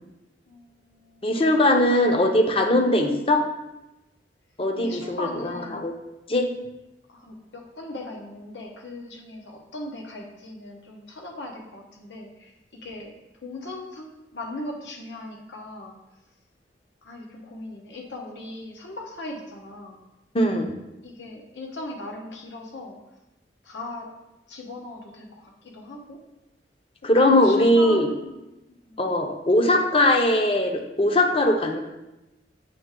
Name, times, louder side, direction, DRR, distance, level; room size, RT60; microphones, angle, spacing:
voice 1, 0.5-1.2 1.5-1.7 1.9-2.4 4.8-5.8 7.1-12.5 12.8-13.1 13.4-16.0 17.0-20.0 21.0-23.0 23.6-24.1 24.5-26.2 27.1-28.3 28.7-29.2, left 1 dB, 85° left, 0 dB, 1.1 m, -38 dB
voice 2, 1.2-3.4 4.6-5.9 6.3-6.5 20.3-20.7 27.0-28.1 29.0-31.8, left 1 dB, 30° left, 4 dB, 0.6 m, -20 dB
7.8 x 3.2 x 3.7 m, 0.98 s
head